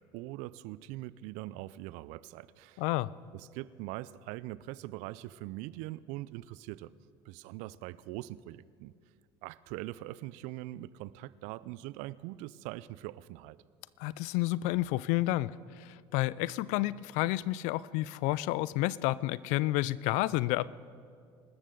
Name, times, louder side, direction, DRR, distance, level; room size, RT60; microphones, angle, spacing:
voice 1, 0.0-2.8 3.3-6.9 7.3-8.9 9.4-13.6, right 17 dB, 70° right, 19 dB, 0.5 m, -42 dB
voice 2, 2.8-3.1 14.0-20.7, left 17 dB, 65° left, 20 dB, 0.4 m, -30 dB
25.0 x 13.5 x 3.9 m, 2.2 s
hypercardioid pair, 70°, 13 cm